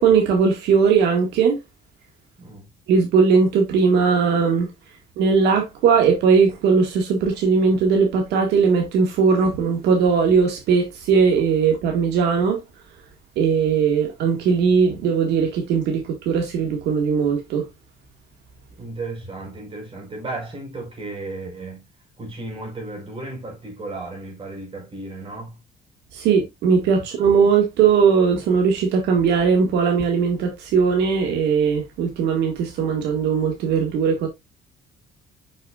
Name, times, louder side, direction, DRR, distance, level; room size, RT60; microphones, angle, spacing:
voice 1, 0.0-1.6 2.9-4.7 5.2-12.6 13.4-17.7 26.1-34.3, right 5 dB, 80° right, 1.9 m, -19 dB
voice 2, 2.4-2.7 18.8-21.9 22.2-25.6, right 2 dB, 30° right, 4.5 m, -34 dB
6.4 x 6.1 x 2.4 m
cardioid pair, 110°, 17 cm